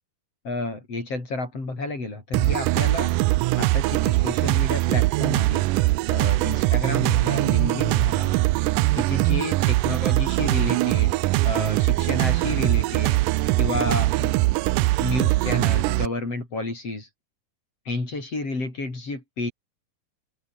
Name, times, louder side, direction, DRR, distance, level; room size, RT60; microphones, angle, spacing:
voice 1, 0.4-3.2 3.6-8.4 9.0-11.1 11.4-13.2 13.5-14.4 15.0-17.1 17.9-19.5, left 2 dB, 45° left, 7.8 m, -31 dB
sound 1, 2.3-16.1, right 19 dB, 80° right, 2.0 m, -22 dB
open air
omnidirectional pair, 4.0 m